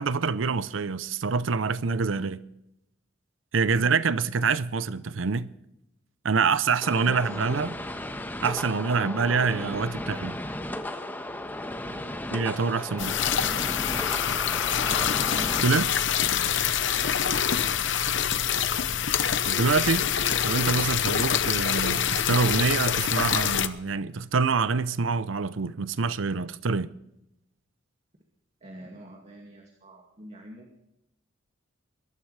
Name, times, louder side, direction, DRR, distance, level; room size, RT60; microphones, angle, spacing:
voice 1, 0.0-2.4 3.5-5.5 6.2-7.7 8.4-10.4 12.3-13.1 15.6-16.0 19.4-20.1 20.4-26.9, right 4 dB, 80° right, 0.6 m, -26 dB
sound 1, 6.8-15.6, left 1 dB, 10° left, 1.2 m, -35 dB
voice 2, 6.9-8.0 11.8-12.2 12.9-13.7 16.9-17.9 28.6-30.8, right 1 dB, 35° right, 2.3 m, -45 dB
sound 2, 13.0-23.7, left 8 dB, 70° left, 0.9 m, -25 dB
23.0 x 13.0 x 3.3 m
head